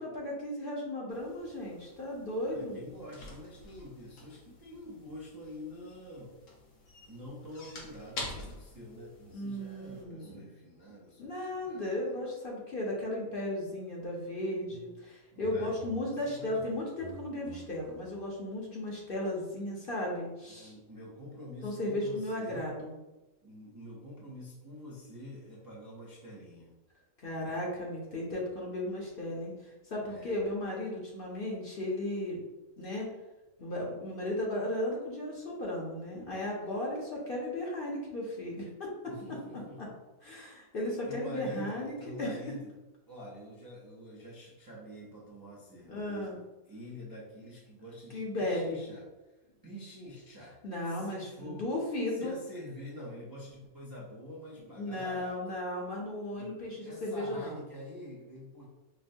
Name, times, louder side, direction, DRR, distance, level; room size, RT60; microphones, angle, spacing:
voice 1, 0.0-2.8 9.3-10.5 11.2-20.7 21.6-22.9 27.2-32.4 32.8-33.1 33.6-38.7 40.2-42.4 45.9-46.3 48.1-48.8 50.6-52.3 54.8-57.6, left 1 dB, 50° left, -3 dB, 0.8 m, -35 dB
sound 1, 1.1-10.0, left 2 dB, 70° left, 1.3 m, -48 dB
voice 2, 2.4-6.3 7.1-12.1 15.3-16.6 20.5-22.7 23.4-26.7 30.0-30.4 39.0-40.0 41.1-42.7 43.1-46.4 46.7-49.0 49.6-50.5 50.9-51.6 52.1-55.3 56.3-58.6, left 1 dB, 35° right, -6 dB, 0.3 m, -47 dB
sound 2, 14.7-15.1 15.3-18.4, right 1 dB, 65° right, 0.9 m, -51 dB
5.7 x 2.1 x 2.6 m, 1.1 s
omnidirectional pair, 1.5 m